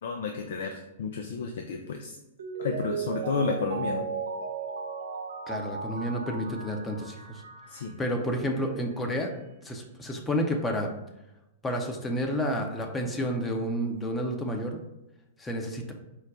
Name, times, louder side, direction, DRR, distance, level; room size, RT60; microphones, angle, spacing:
voice 1, 0.0-2.2 2.6-4.1 7.7-8.0, left 5 dB, 65° left, 3 dB, 0.4 m, -32 dB
Mallet percussion, 2.4-7.9 8.2-8.3, right 5 dB, 70° right, 0.5 m, -35 dB
voice 2, 5.5-7.4 8.0-9.3 9.6-10.9 11.6-14.8 15.4-15.9, equal, 15° left, 3 dB, 0.6 m, -30 dB
4.7 x 2.2 x 3.7 m, 0.95 s
hypercardioid pair, 110°, 0 cm